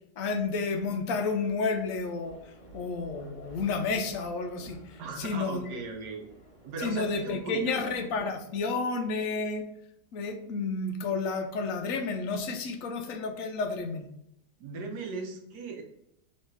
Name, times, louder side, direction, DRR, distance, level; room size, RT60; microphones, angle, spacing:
voice 1, 0.2-5.8 6.8-9.7 10.1-14.1, left 4 dB, 65° left, 5 dB, 0.9 m, -31 dB
sound 1, 1.7-8.2, right 1 dB, 25° left, 0.9 m, -53 dB
voice 2, 5.0-6.2 6.6-7.8 14.6-15.8, right 4 dB, 85° right, 3 dB, 1.4 m, -38 dB
3.7 x 3.2 x 4.5 m, 0.80 s
omnidirectional pair, 1.7 m